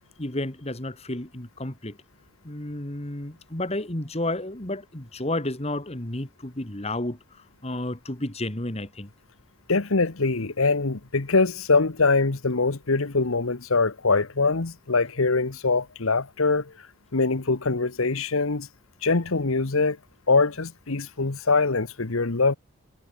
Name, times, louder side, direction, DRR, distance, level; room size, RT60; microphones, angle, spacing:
voice 1, 0.2-2.0 2.4-9.1, left 1 dB, 30° left, 2.0 m, -31 dB
voice 2, 9.7-16.7 17.1-18.7 19.0-20.0 20.3-22.6, left 3 dB, 75° left, 1.2 m, -23 dB
head